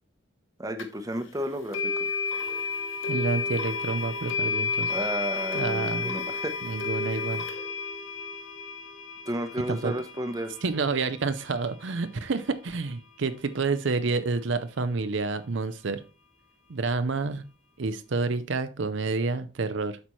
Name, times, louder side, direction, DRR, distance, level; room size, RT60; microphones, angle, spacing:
voice 1, 0.6-2.1 4.9-6.6 7.3-7.4 9.3-10.5, right 1 dB, 15° right, 7 dB, 0.8 m, -33 dB
sound 1, 0.8-0.9 1.7-12.7, left 4 dB, 75° left, 1.1 m, -32 dB
voice 2, 3.1-4.9 5.5-6.1 6.6-7.4 9.7-9.9 10.6-16.0 16.7-17.4 17.8-20.0, right 4 dB, 65° right, 11 dB, 0.6 m, -29 dB
8.2 x 5.9 x 3.1 m, 0.31 s
head